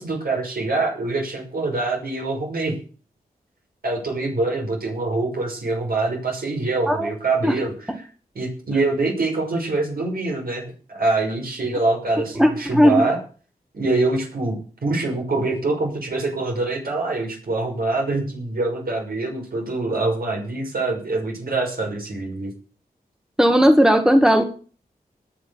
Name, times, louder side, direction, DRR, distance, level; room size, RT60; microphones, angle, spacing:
voice 1, 0.0-2.7 3.8-8.1 8.3-13.2 13.7-22.5, right 2 dB, 70° right, 0 dB, 6.3 m, -24 dB
voice 2, 12.4-13.1 23.4-24.4, equal, 5° right, 6 dB, 2.0 m, -16 dB
19.0 x 6.5 x 7.0 m, 0.40 s
cardioid pair, 55°, 16 cm